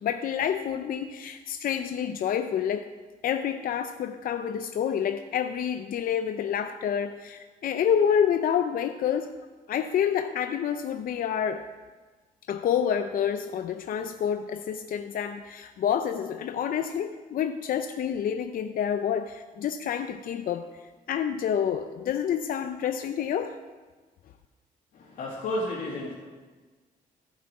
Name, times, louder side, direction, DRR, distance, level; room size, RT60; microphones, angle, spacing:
voice 1, 0.0-2.9 3.2-9.3 9.7-11.7 12.5-20.6 21.1-23.6, left 8 dB, 70° left, 8 dB, 0.5 m, -28 dB
voice 2, 24.9-26.1, left 1 dB, 85° left, -6 dB, 2.1 m, -32 dB
14.5 x 7.4 x 4.8 m, 1.4 s
cardioid pair, 110°, 15 cm